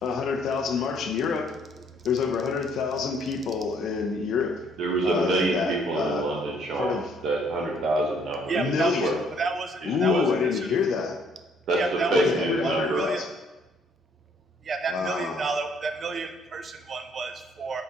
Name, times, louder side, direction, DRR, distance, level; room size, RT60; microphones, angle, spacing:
voice 1, 0.0-1.5 2.0-4.6 5.0-6.3 6.8-7.1 8.5-9.2 9.8-11.2 12.1-13.3 14.9-15.5, left 6 dB, 60° left, 5 dB, 0.4 m, -27 dB
voice 2, 4.8-8.7 9.0-9.1 10.0-10.2 11.7-11.8 12.1-13.0, right 2 dB, 60° right, -1 dB, 0.7 m, -26 dB
voice 3, 8.5-9.0 9.4-10.2 10.5-10.6 11.8-12.2 12.6-13.2 14.6-17.8, right 5 dB, 35° right, 7 dB, 0.4 m, -31 dB
5.4 x 3.5 x 2.7 m, 1.1 s
cardioid pair, 160°, 0 cm